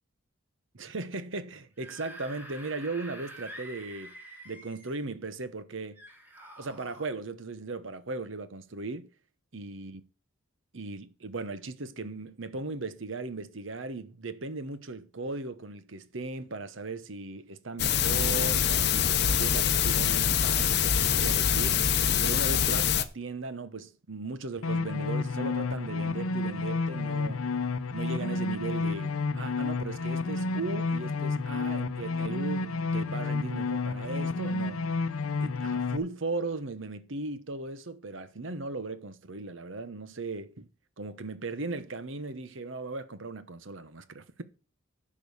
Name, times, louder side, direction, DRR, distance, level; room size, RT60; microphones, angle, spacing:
voice 1, 0.7-4.1 4.4-6.0 6.6-9.1 9.5-10.0 10.7-21.8 22.2-27.4 27.9-34.9 35.4-40.7 41.0-44.4, right 3 dB, 65° right, 1.0 m, -37 dB
Screaming / Screech, 1.6-5.0 6.0-7.1, right 1 dB, 10° right, 2.3 m, -47 dB
sound 1, 17.8-23.0, left 8 dB, 50° left, 0.8 m, -25 dB
sound 2, 24.6-36.0, left 3 dB, 85° left, 0.7 m, -30 dB
10.5 x 5.4 x 6.9 m
head